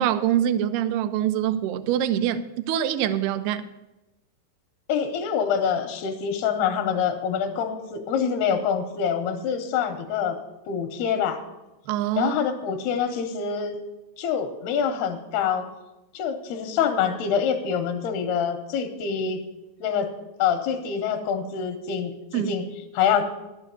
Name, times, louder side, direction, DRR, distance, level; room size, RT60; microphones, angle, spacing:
voice 1, 0.0-3.7 11.9-12.4 22.3-22.5, right 11 dB, 85° right, 12 dB, 2.5 m, -24 dB
voice 2, 4.9-10.4 10.7-11.4 12.2-13.8 14.2-15.7 16.1-19.4 19.8-20.1 20.4-22.7 22.9-23.3, left 7 dB, 85° left, 6 dB, 2.8 m, -25 dB
11.5 x 6.9 x 6.9 m, 0.99 s
omnidirectional pair, 4.5 m